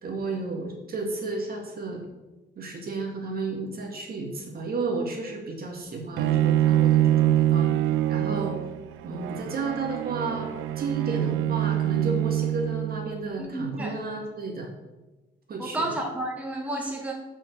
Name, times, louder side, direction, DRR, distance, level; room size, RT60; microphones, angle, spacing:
voice 1, 0.0-2.0 2.6-8.6 9.0-14.7 15.5-15.9, right 3 dB, 50° right, 0 dB, 2.1 m, -32 dB
Bowed string instrument, 6.2-13.2, right 12 dB, 90° right, 0.4 m, -25 dB
voice 2, 13.4-14.0 15.6-17.1, right 1 dB, 5° right, 1 dB, 1.2 m, -31 dB
6.2 x 4.7 x 6.6 m, 1.1 s
cardioid pair, 90°, 20 cm